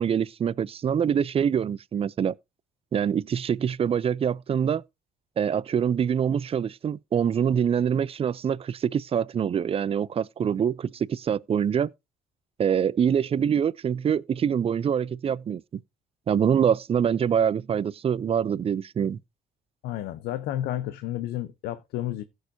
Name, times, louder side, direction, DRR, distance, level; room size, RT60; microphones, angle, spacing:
voice 1, 0.0-2.3 2.9-4.8 5.4-11.9 12.6-15.8 16.3-19.2, right 8 dB, 35° right, 0.5 m, -25 dB
voice 2, 19.8-22.2, left 13 dB, 85° left, 0.8 m, -31 dB
16.0 x 6.6 x 2.7 m
cardioid pair, 100°, 16 cm